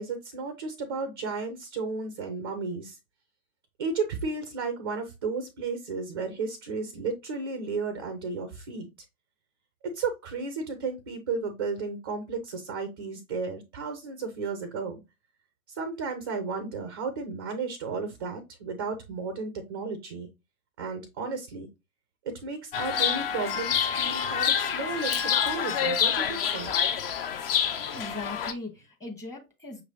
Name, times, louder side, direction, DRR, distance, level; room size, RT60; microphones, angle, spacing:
voice 1, 0.0-3.0 3.8-8.9 9.8-15.0 15.7-20.3 20.8-21.7 22.3-26.7, right 4 dB, 20° right, 0.3 m, -33 dB
Chirp tweet, 22.7-28.5, left 7 dB, 40° left, 0.6 m, -27 dB
voice 2, 27.9-29.8, left 2 dB, 5° left, 1.0 m, -39 dB
5.9 x 3.2 x 2.6 m
figure-of-eight pair, 110°, 43 cm